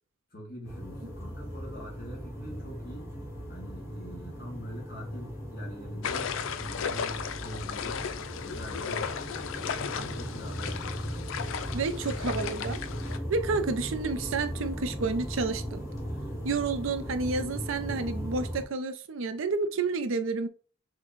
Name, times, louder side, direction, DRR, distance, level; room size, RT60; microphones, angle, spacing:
voice 1, 0.3-3.1 3.5-10.8, equal, 45° left, 2.4 m, -45 dB
sound 1, 0.7-18.6, equal, 15° left, 2.1 m, -37 dB
sound 2, 6.0-13.2, left 7 dB, 75° left, 0.4 m, -35 dB
voice 2, 11.7-12.8 13.3-15.8 16.4-20.5, right 4 dB, 75° right, 0.5 m, -30 dB
6.3 x 2.2 x 3.1 m
head